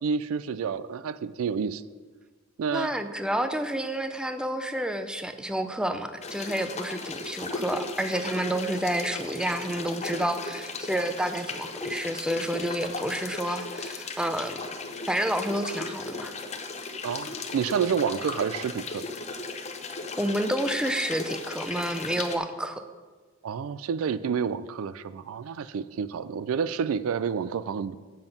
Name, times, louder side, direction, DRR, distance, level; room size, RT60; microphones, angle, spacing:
voice 1, 0.0-1.8 2.6-2.9 17.0-19.1 23.4-28.0, right 6 dB, 70° right, 16 dB, 0.4 m, -29 dB
voice 2, 2.7-14.6 15.1-16.3 20.2-22.8, right 1 dB, 5° right, 9 dB, 0.5 m, -29 dB
sound 1, 6.2-22.4, left 3 dB, 30° left, 0.7 m, -36 dB
7.8 x 7.0 x 5.4 m, 1.4 s
head